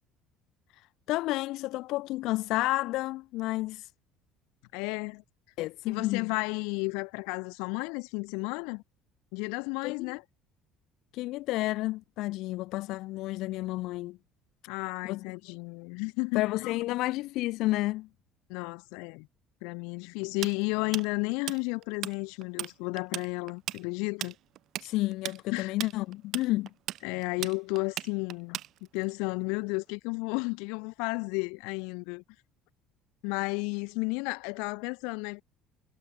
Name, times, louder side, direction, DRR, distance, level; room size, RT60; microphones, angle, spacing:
voice 1, 1.1-3.9 5.6-6.3 9.8-10.1 11.1-14.2 15.0-15.2 16.3-18.1 24.8-26.7, left 18 dB, 55° left, 2.2 m, -31 dB
voice 2, 4.7-5.2 5.9-8.8 9.3-10.2 14.7-16.8 18.5-19.3 19.6-24.3 25.5-25.7 27.0-28.6 28.9-32.2 33.2-35.4, left 32 dB, 85° left, 2.9 m, -33 dB
Tools, 20.4-22.1 22.4-22.7 23.0-29.0, right 13 dB, 45° right, 3.0 m, -36 dB
cardioid pair, 175°, 0 cm